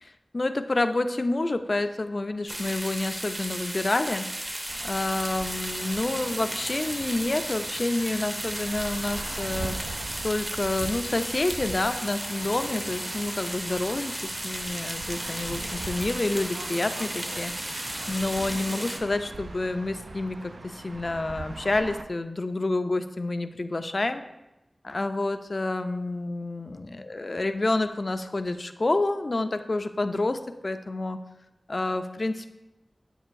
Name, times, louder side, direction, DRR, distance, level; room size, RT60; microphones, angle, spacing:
voice 1, 0.0-4.3 4.8-10.0 10.2-17.8 18.1-24.2 24.8-31.2 31.7-32.5, left 2 dB, 50° left, 9 dB, 0.4 m, -28 dB
sound 1, 2.5-19.0, right 1 dB, 30° right, 0.7 m, -34 dB
sound 2, 4.7-22.0, right 3 dB, 75° right, 0.3 m, -41 dB
7.9 x 6.3 x 2.5 m, 0.95 s
wide cardioid pair, 75°, 0 cm